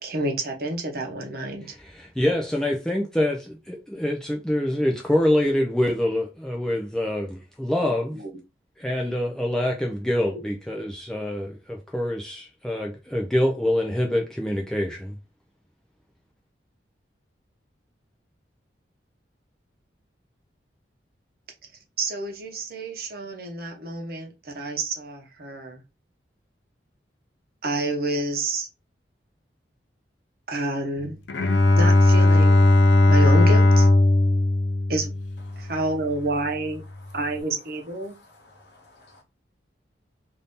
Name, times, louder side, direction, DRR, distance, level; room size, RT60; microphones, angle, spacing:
voice 1, 0.0-1.7 7.8-8.3 22.0-25.8 27.6-28.7 30.5-31.2 31.8-32.6 33.1-33.9 34.9-35.1 35.6-36.8 37.1-38.1, right 2 dB, 55° right, 0.8 m, -29 dB
voice 2, 1.7-8.2 8.8-15.2, left 1 dB, 5° left, 0.4 m, -25 dB
Bowed string instrument, 31.3-35.8, left 2 dB, 85° left, 0.5 m, -17 dB
voice 3, 38.0-39.2, left 2 dB, 70° left, 1.1 m, -54 dB
2.7 x 2.7 x 3.5 m
head